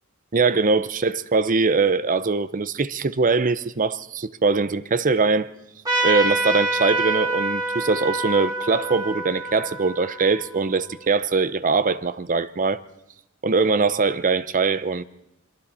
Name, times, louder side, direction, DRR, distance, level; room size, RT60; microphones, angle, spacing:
voice 1, 0.3-5.5 6.0-12.8 13.4-15.0, right 4 dB, 40° right, 0.7 m, -22 dB
Trumpet, 5.8-10.9, right 2 dB, 20° right, 3.0 m, -26 dB
27.5 x 23.5 x 4.3 m
head